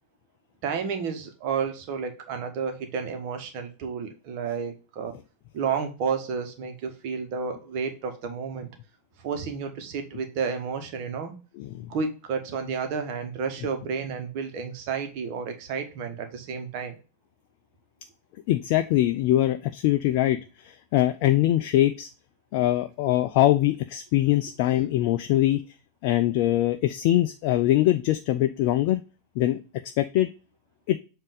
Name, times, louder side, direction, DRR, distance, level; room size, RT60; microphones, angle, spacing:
voice 1, 0.6-5.1 5.5-8.7 9.2-11.3 11.9-17.0, right 6 dB, 45° right, 6 dB, 1.2 m, -31 dB
voice 2, 11.6-11.9 18.5-22.1 22.5-25.6 26.0-29.0 29.4-30.3 30.9-31.0, left 14 dB, 45° left, 9 dB, 0.4 m, -23 dB
7.3 x 2.7 x 5.1 m, 0.33 s
figure-of-eight pair, 90°, 0 cm